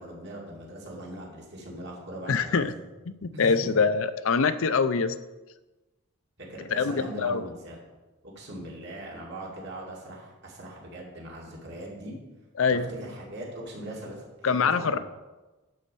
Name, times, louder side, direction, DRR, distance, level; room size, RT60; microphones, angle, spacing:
voice 1, 0.0-2.8 3.3-3.8 6.4-7.8 8.2-12.2 12.7-15.0, right 1 dB, 50° right, -3 dB, 2.8 m, -40 dB
voice 2, 2.3-2.7 3.2-5.2 6.7-7.4 12.6-12.9 14.4-15.0, left 5 dB, 65° left, 12 dB, 0.5 m, -24 dB
11.5 x 4.3 x 6.8 m, 1.1 s
head